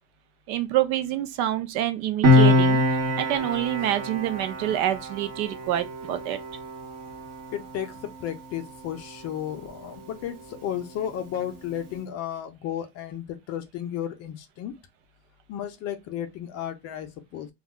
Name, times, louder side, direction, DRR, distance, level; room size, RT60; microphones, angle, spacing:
voice 1, 0.5-2.8 3.2-6.4, right 12 dB, 70° right, 0.7 m, -27 dB
Piano, 2.2-9.3 9.5-9.8, left 1 dB, 35° right, 0.9 m, -24 dB
voice 2, 7.5-14.7 15.5-17.5, left 10 dB, 35° left, 0.4 m, -33 dB
2.4 x 2.1 x 3.5 m
supercardioid pair, 135°, 44 cm